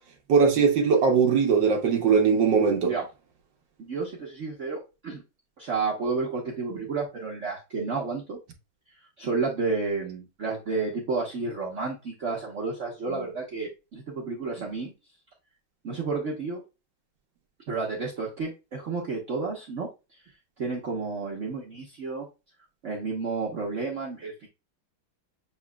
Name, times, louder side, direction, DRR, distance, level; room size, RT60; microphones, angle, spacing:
voice 1, 0.3-2.9, right 5 dB, 65° right, 1.5 m, -20 dB
voice 2, 3.8-5.2 5.6-8.4 9.2-14.9 15.8-16.6 17.7-20.2 20.6-22.3 22.8-24.5, right 4 dB, 45° right, 1.1 m, -31 dB
7.2 x 3.0 x 2.2 m
omnidirectional pair, 2.2 m